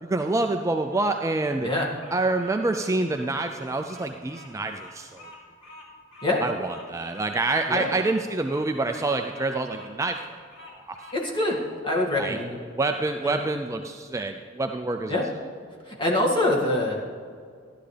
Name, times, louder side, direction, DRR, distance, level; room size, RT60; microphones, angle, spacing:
voice 1, 0.0-1.7 2.1-5.3 6.4-10.4 10.7-11.0 12.2-12.4 12.7-15.2, right 2 dB, 15° right, 5 dB, 0.4 m, -27 dB
Bird vocalization bird call bird song, 0.7-11.6, left 1 dB, 85° left, 3.0 m, -47 dB
voice 2, 11.1-11.6 11.8-12.6 13.2-13.4 15.1-15.3 15.9-16.9, left 1 dB, 25° left, -3 dB, 2.0 m, -24 dB
14.5 x 11.5 x 3.4 m, 2.1 s
head